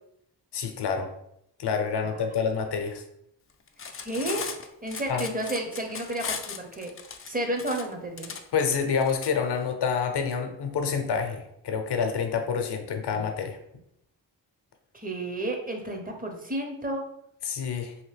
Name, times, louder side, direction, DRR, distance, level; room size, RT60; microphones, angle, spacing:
voice 1, 0.5-1.1 1.6-3.0 5.1-5.2 8.5-13.6 17.5-17.9, left 6 dB, 65° left, 5 dB, 0.7 m, -28 dB
Cutlery silverware, 3.7-9.3, left 6 dB, 30° left, 0.4 m, -37 dB
voice 2, 4.1-4.4 4.8-6.9 7.2-8.3 13.1-13.2 14.9-17.0, right 1 dB, 20° right, 3 dB, 0.7 m, -31 dB
2.9 x 2.6 x 3.3 m, 0.77 s
cardioid pair, 50°, 44 cm